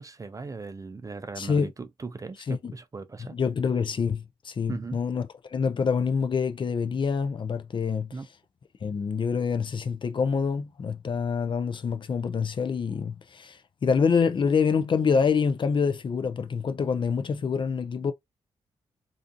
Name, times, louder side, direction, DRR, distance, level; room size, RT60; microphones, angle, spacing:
voice 1, 0.0-3.4 4.7-5.0 8.1-8.3, right 4 dB, 30° right, 0.4 m, -38 dB
voice 2, 1.4-1.7 2.5-2.7 3.3-5.2 5.5-8.1 8.8-18.1, left 5 dB, 40° left, 0.4 m, -26 dB
2.4 x 2.4 x 2.5 m
supercardioid pair, 55°, 12 cm